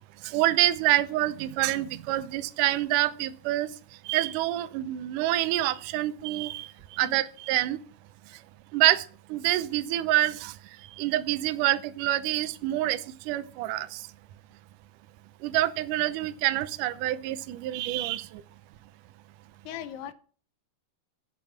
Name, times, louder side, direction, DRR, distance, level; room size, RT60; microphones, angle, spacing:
voice 1, 0.2-3.7 4.1-7.8 8.7-10.5 11.0-14.0 15.4-18.4, right 15 dB, 80° right, 1.9 m, -27 dB
voice 2, 19.7-20.1, left 10 dB, 80° left, 2.9 m, -38 dB
10.5 x 9.2 x 5.9 m
omnidirectional pair, 4.7 m